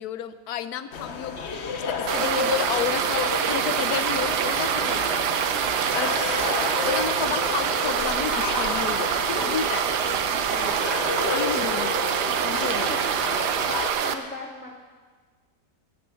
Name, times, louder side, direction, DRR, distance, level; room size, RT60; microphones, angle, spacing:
voice 1, 0.0-5.2 5.9-9.8 11.3-11.9 12.3-12.9, left 9 dB, 70° left, 12 dB, 1.1 m, -31 dB
sound 1, 0.9-13.9, left 4 dB, 45° left, 1.1 m, -32 dB
sound 2, 2.1-14.1, right 8 dB, 75° right, 1.3 m, -25 dB
voice 2, 10.0-11.0 11.7-11.9 12.7-13.2 13.5-14.8, left 2 dB, 5° left, -1 dB, 1.7 m, -39 dB
16.0 x 7.8 x 7.0 m, 1.5 s
omnidirectional pair, 1.8 m